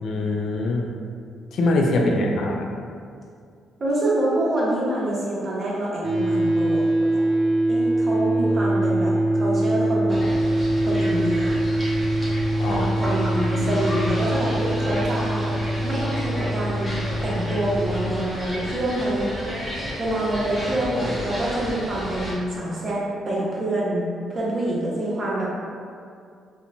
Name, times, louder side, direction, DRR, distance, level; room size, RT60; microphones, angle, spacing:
voice 1, 0.0-1.0 1.5-2.7 12.6-12.9, left 2 dB, 70° left, 1 dB, 0.3 m, -23 dB
voice 2, 1.9-2.6 3.8-7.2 7.7-10.2 10.8-11.6 12.7-15.5 15.8-19.3 20.0-24.0 24.3-25.5, right 1 dB, 40° right, -5 dB, 0.7 m, -26 dB
sound 1, 6.0-18.1, right 1 dB, 80° right, 0.5 m, -23 dB
sound 2, 10.1-22.3, equal, 10° left, 0.8 m, -32 dB
2.9 x 2.1 x 2.5 m, 2.3 s
cardioid pair, 90°, 0 cm